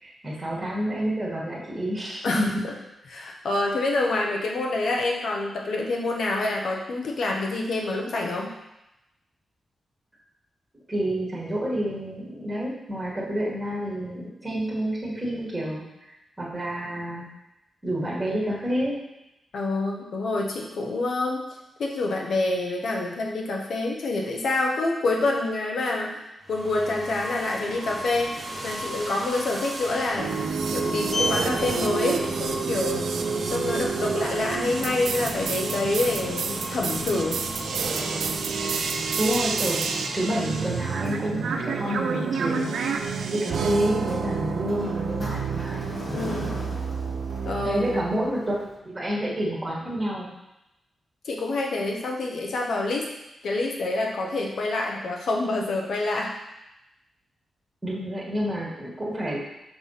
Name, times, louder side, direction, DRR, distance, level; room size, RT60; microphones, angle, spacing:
voice 1, 0.0-2.5 10.9-15.8 16.4-17.2 17.8-19.0 39.1-39.8 40.1-42.7 43.3-45.9 47.6-48.5 48.8-50.3 57.8-59.4, equal, 15° right, -6 dB, 1.8 m, -28 dB
voice 2, 3.1-8.5 19.5-21.5 21.8-26.2 26.5-28.3 28.6-30.4 30.7-33.1 33.5-37.4 46.1-46.6 47.4-48.1 51.2-53.1 53.4-56.3, left 2 dB, 65° left, -1 dB, 1.1 m, -27 dB
sound 1, 26.5-41.2, right 2 dB, 40° right, 1.0 m, -35 dB
sound 2, 30.2-48.2, right 5 dB, 90° right, 0.5 m, -29 dB
Sliding door, 30.5-48.8, left 2 dB, 30° left, 1.3 m, -39 dB
6.1 x 3.4 x 5.6 m, 0.91 s
wide cardioid pair, 175°, 0 cm